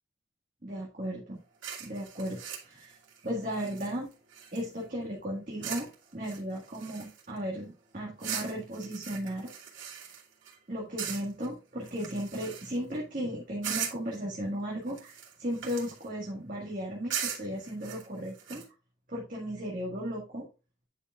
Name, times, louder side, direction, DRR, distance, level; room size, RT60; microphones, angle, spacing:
voice 1, 0.6-1.4 1.8-3.0 3.2-4.1 4.5-9.5 10.7-18.6 19.1-20.5, equal, 45° right, -3 dB, 1.8 m, -36 dB
sound 1, 1.6-4.8 5.6-5.9 6.2-7.4 8.2-10.5 11.0-11.5 11.8-12.9 13.6-14.1 14.9-16.1 17.1-18.6, right 8 dB, 80° right, 2.6 m, -39 dB
10.0 x 5.1 x 2.4 m, 0.32 s
head